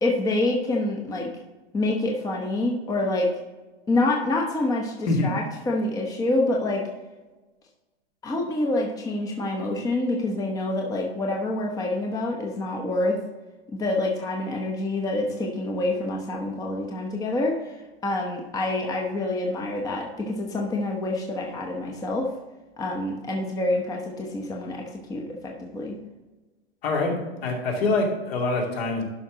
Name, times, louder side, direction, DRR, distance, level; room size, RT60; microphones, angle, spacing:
voice 1, 0.0-1.3 1.7-3.4 3.9-6.9 8.2-13.2 13.7-22.3 22.8-26.0, left 2 dB, 10° left, 0 dB, 0.9 m, -27 dB
voice 2, 26.8-29.0, left 3 dB, 60° left, 0 dB, 2.7 m, -25 dB
11.5 x 5.4 x 3.9 m, 1.2 s
hypercardioid pair, 130°, 33 cm